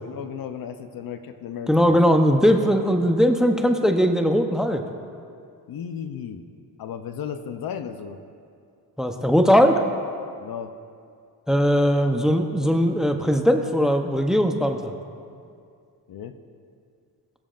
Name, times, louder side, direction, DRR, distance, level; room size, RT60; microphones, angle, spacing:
voice 1, 0.0-2.0 5.7-6.4 6.8-8.2 10.4-10.7 16.1-16.3, left 8 dB, 60° left, 9 dB, 0.7 m, -34 dB
voice 2, 1.7-4.8 9.0-9.8 11.5-14.9, equal, ahead, 5 dB, 0.8 m, -19 dB
18.0 x 7.1 x 2.5 m, 2.3 s
cardioid pair, 70°, 40 cm